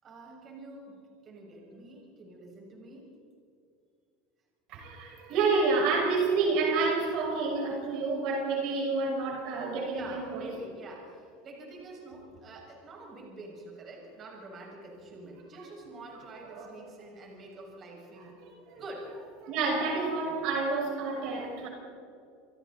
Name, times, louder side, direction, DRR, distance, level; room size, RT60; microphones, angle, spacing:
voice 1, 0.0-3.1 5.3-5.5 9.9-18.4 18.8-19.1, right 2 dB, 30° right, -1 dB, 7.2 m, -47 dB
voice 2, 4.7-10.5 16.5-16.7 18.4-18.8 19.4-21.7, right 4 dB, 55° right, 0 dB, 6.5 m, -29 dB
29.5 x 23.5 x 4.5 m, 2.4 s
supercardioid pair, 140°, 0 cm